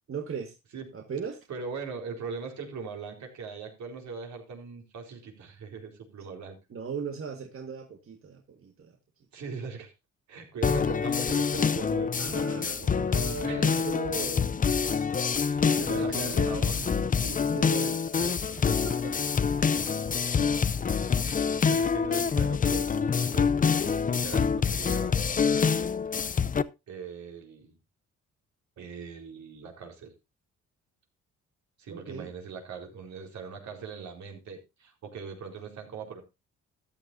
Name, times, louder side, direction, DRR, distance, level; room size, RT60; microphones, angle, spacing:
voice 1, 0.1-0.5 0.9-1.4 6.7-8.9 12.2-15.2 15.6-16.6 17.2-19.2 19.7-20.1 31.9-32.3, right 6 dB, 45° right, 1.7 m, -38 dB
voice 2, 1.5-6.6 9.3-9.9 10.3-12.9 13.4-13.8 15.3-17.1 19.6-19.7 21.2-25.2 26.9-27.8 28.8-30.1 31.8-36.2, right 5 dB, 65° right, 4.3 m, -40 dB
sound 1, 10.6-26.6, left 6 dB, 25° left, 0.6 m, -26 dB
14.0 x 10.5 x 2.7 m
cardioid pair, 90°, 30 cm